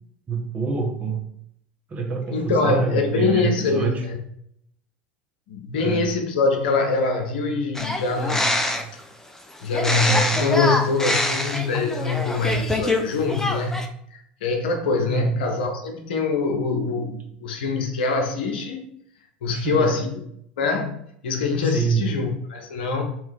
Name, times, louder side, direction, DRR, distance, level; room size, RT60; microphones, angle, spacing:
voice 1, 0.3-1.2 1.9-4.0 5.7-6.1 8.8-8.9 15.1-15.4 19.5-20.1 21.6-22.1, right 5 dB, 30° right, 1.2 m, -26 dB
voice 2, 2.3-4.2 5.5-8.5 9.6-13.8 14.1-18.9 19.4-20.2 20.6-21.0 21.2-23.0, left 4 dB, 70° left, 0.9 m, -24 dB
sound 1, 7.7-9.0 9.7-13.0 13.3-13.9, left 1 dB, 10° left, 0.7 m, -24 dB
3.7 x 3.1 x 4.6 m
hypercardioid pair, 75°, 5 cm